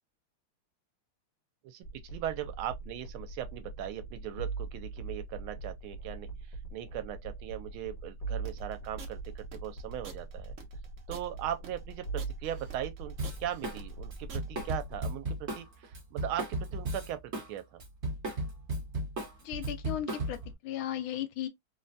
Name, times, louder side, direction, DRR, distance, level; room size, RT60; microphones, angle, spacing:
sound 1, 1.8-15.1, right 3 dB, 65° left, 1.8 m, -42 dB
voice 1, 2.1-10.5 11.1-17.8, right 11 dB, 80° right, 1.4 m, -39 dB
sound 2, 8.4-14.8, right 5 dB, 60° right, 0.8 m, -49 dB
Drum kit, 13.2-13.8 14.1-17.5 17.8-20.5, right 1 dB, 40° right, 1.1 m, -35 dB
voice 2, 19.4-21.5, left 11 dB, 80° left, 1.5 m, -36 dB
3.8 x 2.1 x 2.5 m
omnidirectional pair, 2.3 m